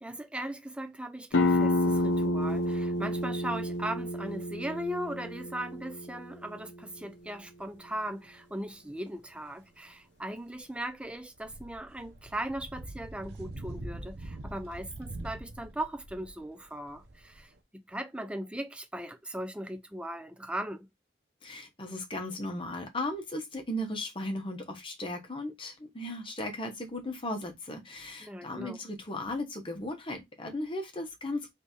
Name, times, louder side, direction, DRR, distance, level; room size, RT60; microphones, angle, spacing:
voice 1, 0.0-20.9 28.2-28.8, right 1 dB, 5° right, 0.5 m, -38 dB
sound 1, 1.3-6.7, left 1 dB, 75° left, 0.7 m, -29 dB
sound 2, 7.9-8.0 10.3-17.6, right 1 dB, 60° right, 0.7 m, -44 dB
voice 2, 21.4-31.5, left 1 dB, 25° left, 1.0 m, -36 dB
3.4 x 3.2 x 4.1 m
head